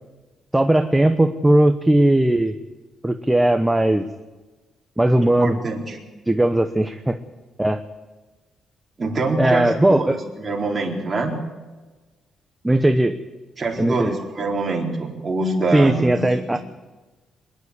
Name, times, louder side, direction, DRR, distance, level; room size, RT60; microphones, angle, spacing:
voice 1, 0.5-2.6 3.0-4.1 5.0-5.6 6.3-7.2 7.6-7.8 9.4-10.2 12.6-13.2 13.8-14.2 15.7-16.6, right 1 dB, 10° right, 7 dB, 0.9 m, -18 dB
voice 2, 5.4-6.0 9.0-11.4 13.6-16.2, right 2 dB, 25° right, 0 dB, 4.3 m, -25 dB
25.0 x 11.0 x 9.8 m, 1.2 s
cardioid pair, 145°, 0 cm